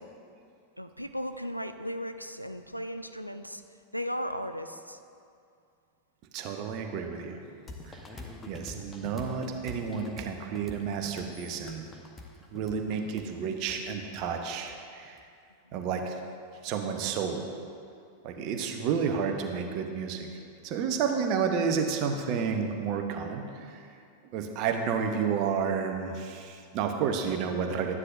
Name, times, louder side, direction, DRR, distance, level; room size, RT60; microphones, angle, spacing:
voice 1, 0.8-3.6 3.9-5.0 12.7-13.1 15.6-15.7 18.2-18.5, equal, 90° left, 9 dB, 0.4 m, -37 dB
voice 2, 6.3-7.4 7.8-8.0 8.5-11.9 12.5-15.2 15.7-16.2 16.6-17.5 18.2-20.3 20.6-23.9 24.3-28.0, right 6 dB, 40° right, 5 dB, 0.9 m, -31 dB
sound 1, 7.7-15.2, left 2 dB, 15° left, 0.9 m, -46 dB
12.5 x 9.7 x 2.6 m, 2.4 s
figure-of-eight pair, 90°, 0 cm